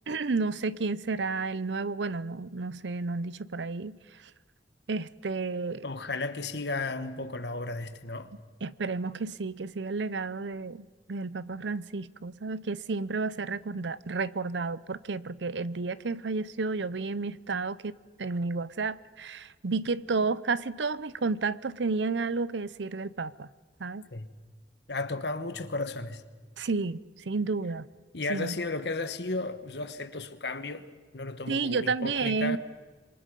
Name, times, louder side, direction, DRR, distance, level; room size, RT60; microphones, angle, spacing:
voice 1, 0.1-4.0 4.9-5.8 8.6-23.5 23.8-24.1 26.6-27.9 28.3-28.6 31.5-32.6, right 4 dB, 90° right, 0.7 m, -31 dB
voice 2, 5.8-8.3 24.1-24.3 24.9-26.2 28.1-30.9 31.1-32.6, left 3 dB, 70° left, 1.3 m, -34 dB
27.0 x 24.0 x 5.3 m
head